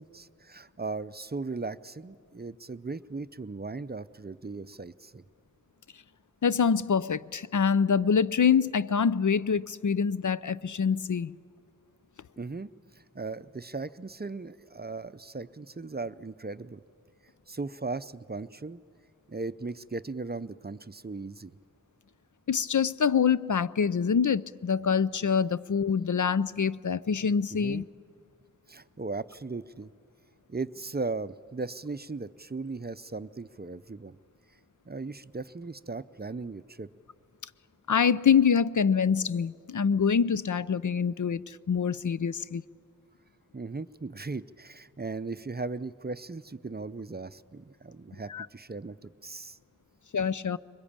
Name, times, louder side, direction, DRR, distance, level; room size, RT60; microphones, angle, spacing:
voice 1, 0.0-5.2 12.4-16.8 17.5-18.8 19.3-21.5 27.5-27.9 28.7-29.9 30.5-34.2 34.9-36.9 43.5-49.6, right 3 dB, 30° right, 0.5 m, -37 dB
voice 2, 6.4-11.3 22.5-27.8 37.9-42.6 48.3-48.5 50.1-50.6, left 6 dB, 65° left, 0.5 m, -25 dB
23.0 x 21.0 x 8.8 m
wide cardioid pair, 50°, 32 cm